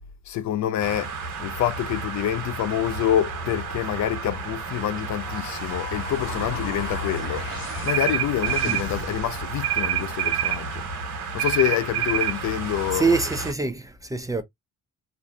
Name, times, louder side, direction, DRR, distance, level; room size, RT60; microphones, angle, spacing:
voice 1, 0.3-10.8 11.3-13.2, left 11 dB, 70° left, 0.5 m, -27 dB
sound 1, 0.8-13.5, right 4 dB, 85° right, 1.2 m, -33 dB
sound 2, 5.2-9.7, left 3 dB, 45° left, 1.3 m, -36 dB
sound 3, 7.9-8.9 9.6-10.6 11.4-12.4, right 12 dB, 55° right, 0.6 m, -25 dB
voice 2, 12.9-14.4, right 4 dB, 10° right, 0.4 m, -24 dB
2.6 x 2.5 x 2.2 m
cardioid pair, 90°, 30 cm